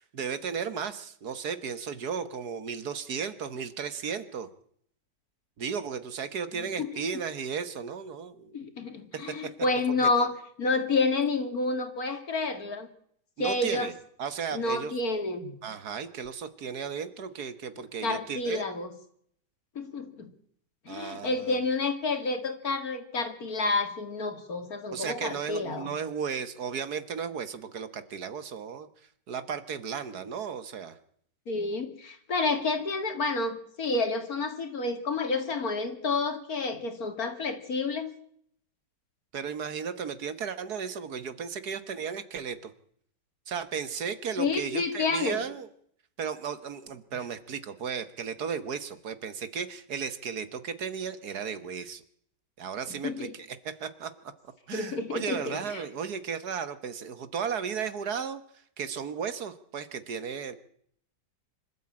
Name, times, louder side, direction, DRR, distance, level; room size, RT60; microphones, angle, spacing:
voice 1, 0.0-4.5 5.6-8.5 9.1-9.2 9.9-10.3 13.4-13.9 14.2-15.0 15.6-18.6 20.9-21.6 24.9-28.9 29.3-31.0 39.3-42.7 43.5-45.7 46.2-52.0 52.6-54.1 54.7-58.4 58.8-60.6, right 6 dB, 65° right, 12 dB, 1.7 m, -35 dB
voice 2, 6.5-7.2 8.5-10.3 10.6-12.9 13.4-13.9 14.5-15.5 18.0-18.9 19.8-20.3 20.9-25.9 31.5-38.1 44.4-45.4 53.0-53.3 54.7-55.8, left 3 dB, 55° left, 8 dB, 2.6 m, -29 dB
25.5 x 13.0 x 8.7 m, 0.66 s
omnidirectional pair, 1.9 m